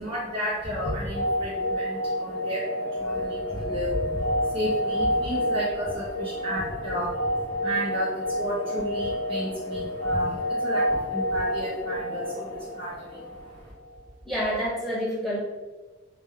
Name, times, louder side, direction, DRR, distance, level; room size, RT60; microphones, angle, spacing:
voice 1, 0.0-13.7, equal, 30° right, -8 dB, 0.5 m, -32 dB
sound 1, 0.7-13.5, equal, 75° left, 0.8 m, -29 dB
voice 2, 14.2-15.4, equal, ahead, -8 dB, 0.9 m, -28 dB
2.2 x 2.1 x 3.4 m, 1.3 s
head